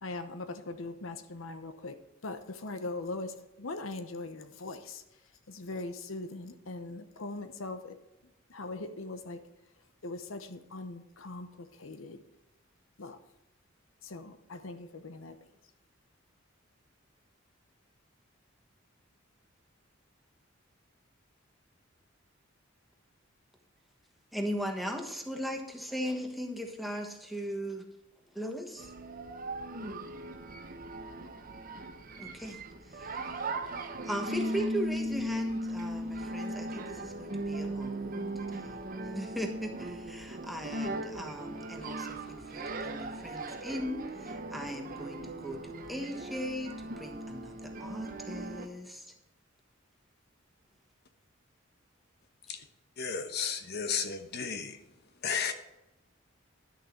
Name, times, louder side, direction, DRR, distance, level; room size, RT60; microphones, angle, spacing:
voice 1, 0.0-2.0 2.2-5.2 5.5-8.0 8.2-9.4 10.0-12.2 13.0-13.2 14.0-15.5, left 2 dB, 85° left, 9 dB, 0.9 m, -41 dB
voice 2, 24.3-27.8 28.3-28.9 32.2-32.6 32.9-33.4 34.0-38.8 39.1-49.1, equal, ahead, 3 dB, 1.2 m, -38 dB
sound 1, 28.8-48.7, right 1 dB, 45° right, 0.8 m, -38 dB
voice 3, 53.0-54.8 55.2-55.5, left 6 dB, 55° left, 7 dB, 1.0 m, -33 dB
11.0 x 6.6 x 4.4 m, 0.97 s
head